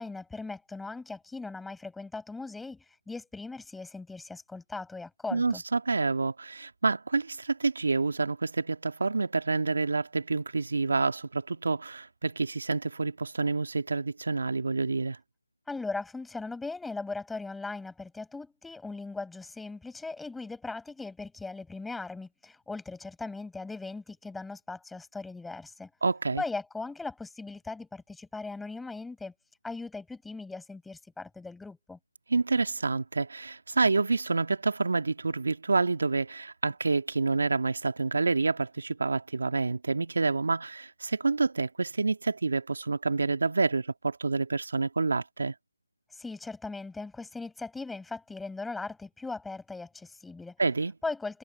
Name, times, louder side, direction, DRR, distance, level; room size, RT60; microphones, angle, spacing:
voice 1, 0.0-5.6 15.7-25.9 26.4-29.3 29.6-32.0 46.2-50.6 51.0-51.4, left 3 dB, ahead, 5.9 m, -39 dB
voice 2, 5.3-15.2 26.0-26.4 32.3-45.5 50.6-50.9, right 3 dB, 60° right, 2.0 m, -28 dB
figure-of-eight pair, 165°, 0 cm